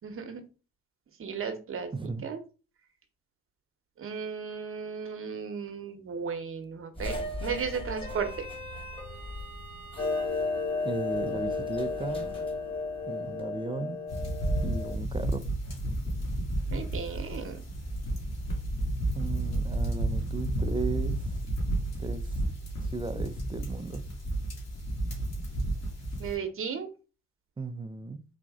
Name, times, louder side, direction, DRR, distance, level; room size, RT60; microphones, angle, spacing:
voice 1, 0.0-0.4 1.2-1.9 2.2-2.4 4.0-8.3 16.7-17.6 26.2-26.9, right 6 dB, 45° right, 0.9 m, -35 dB
voice 2, 1.9-2.3 10.8-12.4 13.0-14.1 14.6-15.4 19.1-21.4 22.0-22.4 22.8-24.0 27.6-28.2, right 3 dB, 15° right, 0.4 m, -36 dB
sound 1, 6.9-13.5, equal, 15° left, 1.3 m, -40 dB
Clock, 10.0-14.9, left 4 dB, 80° left, 2.3 m, -33 dB
sound 2, 14.1-26.3, right 1 dB, 55° left, 2.2 m, -31 dB
4.1 x 2.5 x 3.6 m
cardioid pair, 90°, 30 cm